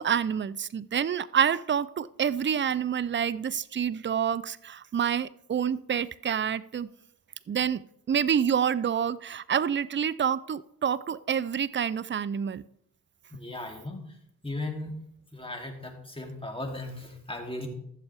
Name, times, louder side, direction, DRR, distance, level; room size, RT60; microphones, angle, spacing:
voice 1, 0.0-6.9 7.5-12.6, right 8 dB, 30° right, 0.5 m, -28 dB
voice 2, 13.3-14.2 14.4-15.0 15.3-17.7, left 2 dB, 15° left, 2.9 m, -37 dB
14.5 x 7.3 x 3.5 m
supercardioid pair, 50°, 39 cm